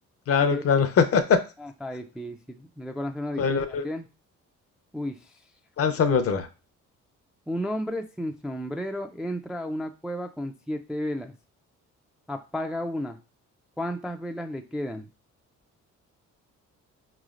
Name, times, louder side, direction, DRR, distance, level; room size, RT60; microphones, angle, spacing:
voice 1, 0.3-1.4 3.4-3.8 5.8-6.5, left 6 dB, 50° left, 8 dB, 0.6 m, -22 dB
voice 2, 1.6-4.1 4.9-5.3 7.5-11.3 12.3-13.2 13.8-15.1, equal, 5° right, 5 dB, 0.3 m, -33 dB
4.8 x 3.1 x 2.4 m, 0.32 s
cardioid pair, 90°, 30 cm